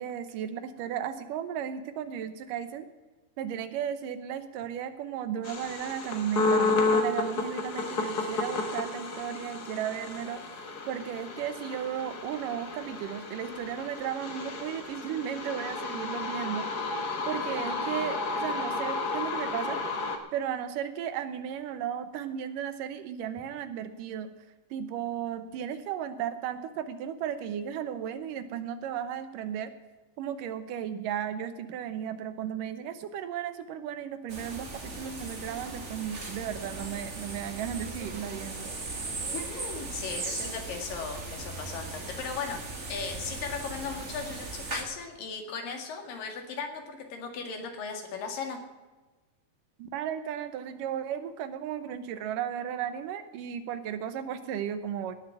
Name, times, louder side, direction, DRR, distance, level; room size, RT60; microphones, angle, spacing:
voice 1, 0.0-2.9 3.4-10.4 10.9-16.7 17.3-19.8 20.3-24.3 24.7-29.7 30.2-38.7 49.8-55.1, right 9 dB, 80° right, 11 dB, 2.6 m, -35 dB
sound 1, 5.4-20.2, left 3 dB, 50° left, 1.2 m, -32 dB
Ext Birds Forest Lt Cars, 34.3-44.8, right 3 dB, 35° right, 1.3 m, -38 dB
voice 2, 39.3-42.6 42.9-48.6, left 5 dB, 90° left, 4 dB, 3.7 m, -37 dB
18.0 x 7.1 x 7.2 m, 1.2 s
omnidirectional pair, 3.8 m